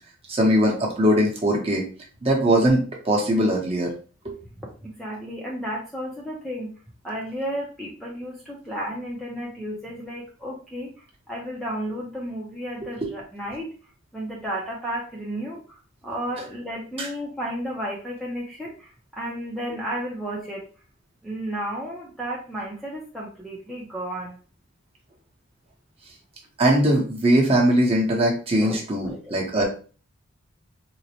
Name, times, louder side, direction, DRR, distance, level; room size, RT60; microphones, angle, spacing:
voice 1, 0.3-1.8 2.2-3.9 4.2-4.4 13.0-13.1 17.0-17.1 26.6-29.7, right 1 dB, 30° right, -1 dB, 0.8 m, -21 dB
voice 2, 4.6-6.7 7.0-13.7 14.1-20.7 21.2-24.4 28.6-29.3, equal, ahead, -5 dB, 0.5 m, -33 dB
3.9 x 2.1 x 2.8 m, 0.38 s
head